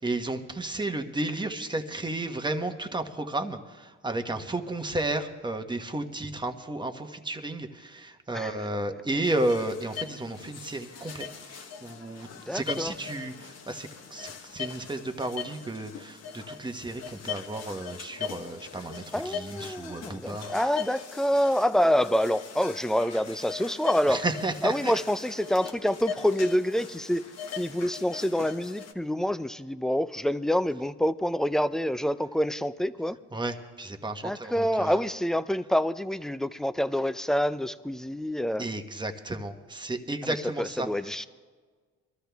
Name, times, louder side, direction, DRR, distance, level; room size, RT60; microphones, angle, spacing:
voice 1, 0.0-20.5 24.1-24.9 33.3-35.0 38.6-40.9, right 2 dB, 15° right, 6 dB, 1.2 m, -33 dB
sound 1, 9.2-28.9, left 7 dB, 55° left, 1.3 m, -40 dB
voice 2, 12.5-12.9 19.1-24.2 24.6-27.2 27.6-33.2 34.2-38.7 40.2-41.3, equal, ahead, 13 dB, 0.5 m, -27 dB
23.0 x 13.0 x 3.5 m, 1.5 s
cardioid pair, 90°, 30 cm